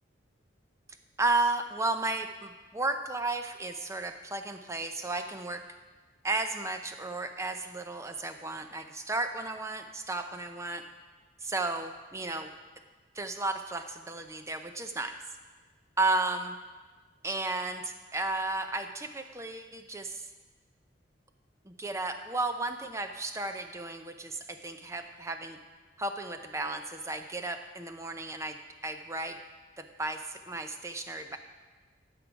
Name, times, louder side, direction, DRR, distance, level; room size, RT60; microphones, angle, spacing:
voice 1, 1.2-5.6 6.2-10.8 11.4-12.5 13.1-15.2 16.0-16.5 17.2-20.3 21.6-25.6 26.0-28.6 28.8-29.4 29.8-31.4, right 2 dB, 15° right, 7 dB, 0.5 m, -33 dB
12.5 x 6.0 x 5.1 m, 1.3 s
head